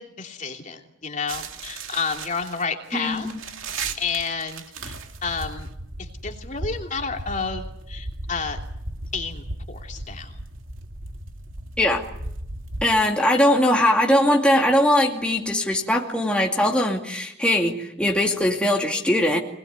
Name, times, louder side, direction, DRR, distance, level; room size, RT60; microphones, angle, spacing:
voice 1, 0.0-3.3 4.0-5.7 6.0-8.6 9.1-10.4, left 5 dB, 35° left, 3 dB, 3.0 m, -30 dB
sound 1, 1.3-12.9, right 2 dB, 80° right, 2.3 m, -36 dB
voice 2, 2.9-3.4 11.8-12.0 12.8-19.4, left 1 dB, 5° left, -1 dB, 2.4 m, -20 dB
26.0 x 20.0 x 9.5 m, 0.78 s
head